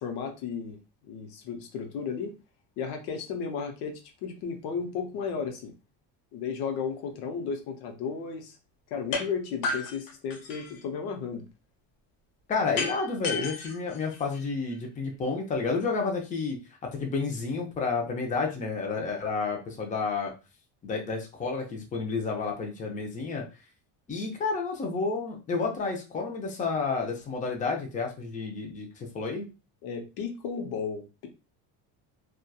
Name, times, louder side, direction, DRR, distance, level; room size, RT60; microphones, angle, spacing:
voice 1, 0.0-0.8 1.0-2.3 2.8-5.7 6.3-8.6 8.9-11.4 29.8-31.3, left 6 dB, 85° left, 4 dB, 0.8 m, -34 dB
sound 1, 9.1-9.3 9.6-10.8 12.8-14.7, left 4 dB, 60° left, 0.9 m, -33 dB
voice 2, 12.5-16.6 16.9-20.3 20.8-23.4 24.1-29.5, left 4 dB, 20° left, 2 dB, 0.5 m, -30 dB
2.8 x 2.3 x 2.2 m, 0.30 s
cardioid pair, 145°, 38 cm